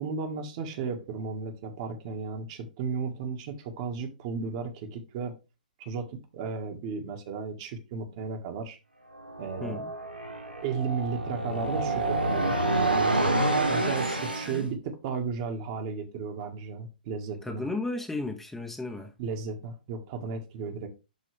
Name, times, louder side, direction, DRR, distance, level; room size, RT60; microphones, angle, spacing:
voice 1, 0.0-5.3 5.8-8.8 9.4-9.8 10.6-12.6 13.7-17.7 19.2-20.9, right 5 dB, 40° right, 1.7 m, -34 dB
sound 1, 9.2-14.6, right 2 dB, 90° right, 2.1 m, -28 dB
voice 2, 9.6-9.9 14.4-14.7 17.4-19.1, left 2 dB, 5° left, 1.0 m, -34 dB
11.5 x 3.8 x 3.4 m
figure-of-eight pair, 120°, 5 cm